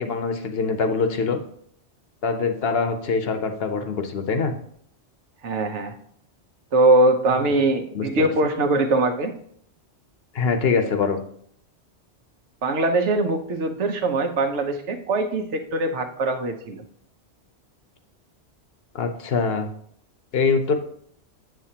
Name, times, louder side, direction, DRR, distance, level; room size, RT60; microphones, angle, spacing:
voice 1, 0.0-1.4 2.2-4.5 7.3-7.5 7.9-8.3 10.3-11.2 18.9-19.7 20.3-20.8, left 5 dB, 60° left, 7 dB, 0.9 m, -23 dB
voice 2, 5.4-5.9 6.7-9.3 12.6-16.8, right 2 dB, 80° right, 6 dB, 1.2 m, -22 dB
7.6 x 7.4 x 2.8 m, 0.65 s
omnidirectional pair, 1.2 m